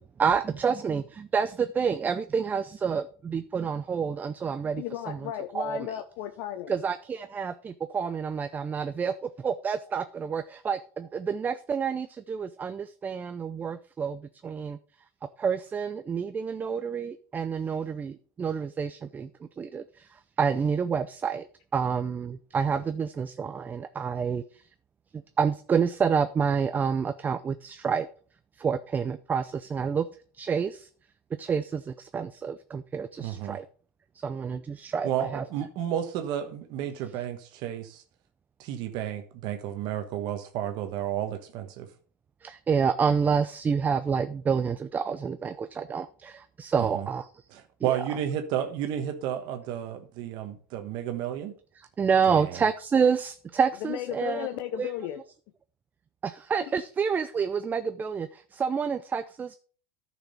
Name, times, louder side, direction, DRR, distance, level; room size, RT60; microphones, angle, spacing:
voice 1, 0.2-6.0 6.7-14.8 15.4-19.3 19.6-21.5 21.7-24.6 25.4-28.1 28.6-30.1 30.3-30.9 31.4-33.7 34.1-35.4 42.4-47.4 47.8-48.0 51.8-54.5 54.8-54.9 56.2-59.5, right 6 dB, 20° right, 0.4 m, -28 dB
voice 2, 4.8-6.7 53.8-55.2, left 12 dB, 60° left, 0.9 m, -34 dB
voice 3, 33.2-33.6 35.0-38.0 38.6-41.9 46.8-47.1 47.5-51.5 52.3-52.6, right 10 dB, 55° right, 1.2 m, -32 dB
10.5 x 6.2 x 5.5 m
supercardioid pair, 135°, 9 cm